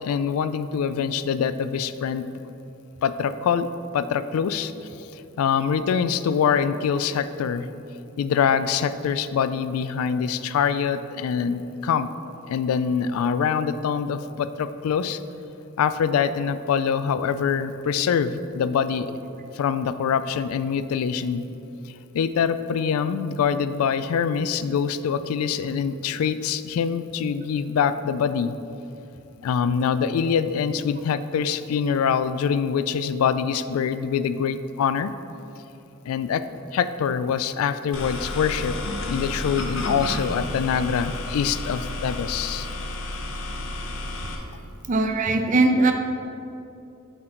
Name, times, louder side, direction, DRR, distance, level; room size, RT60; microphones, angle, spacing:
voice 1, 0.0-2.5 3.0-4.7 5.1-7.7 8.2-12.1 12.5-15.2 15.8-19.1 19.5-21.4 21.8-28.6 29.4-35.1 36.1-36.4 36.7-38.8 39.1-42.7, left 7 dB, 80° left, 15 dB, 0.3 m, -24 dB
sound 1, 37.9-44.4, left 1 dB, 65° left, 0.7 m, -31 dB
voice 2, 44.9-45.9, right 2 dB, 35° right, 5 dB, 0.4 m, -20 dB
8.0 x 3.8 x 4.4 m, 2.8 s
head